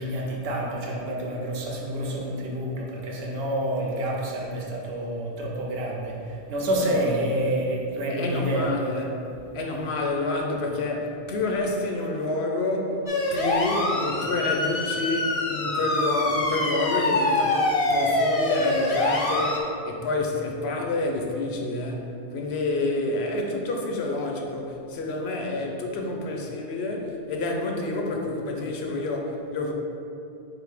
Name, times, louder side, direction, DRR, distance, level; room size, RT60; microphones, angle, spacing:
voice 1, 0.0-8.7, right 1 dB, 70° right, -1 dB, 0.9 m, -28 dB
voice 2, 6.8-7.2 8.1-9.1 9.5-29.7, left 2 dB, 80° left, 2 dB, 0.9 m, -28 dB
sound 1, 13.1-19.6, left 2 dB, 45° left, 0.5 m, -25 dB
4.0 x 2.7 x 4.8 m, 2.7 s
omnidirectional pair, 1.1 m